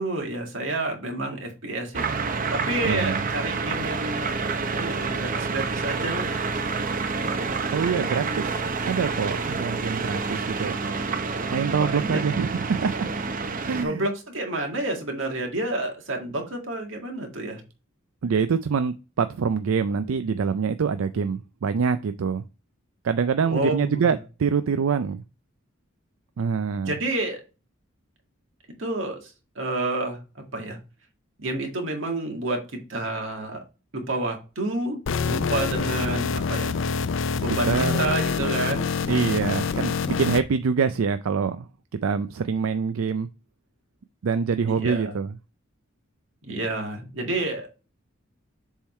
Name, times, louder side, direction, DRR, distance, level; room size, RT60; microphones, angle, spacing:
voice 1, 0.0-2.3 2.5-4.3 4.7-6.4 11.8-12.2 13.8-17.6 23.5-24.2 26.8-27.4 28.8-30.2 30.5-30.8 31.4-33.6 33.9-35.0 35.3-36.8 37.4-38.9 44.7-45.2 46.4-47.7, right 2 dB, 65° right, 1.9 m, -29 dB
sound 1, 1.9-13.8, right 4 dB, 40° right, 0.7 m, -28 dB
voice 2, 2.8-3.2 7.7-8.5 8.9-10.9 11.5-13.1 13.6-14.0 18.2-22.4 23.0-25.2 26.4-26.9 37.5-38.2 39.1-41.7 42.0-43.3 44.2-45.3, right 6 dB, 85° right, 0.4 m, -25 dB
sound 2, 35.1-40.4, left 5 dB, 65° left, 0.5 m, -26 dB
7.3 x 3.7 x 4.3 m
head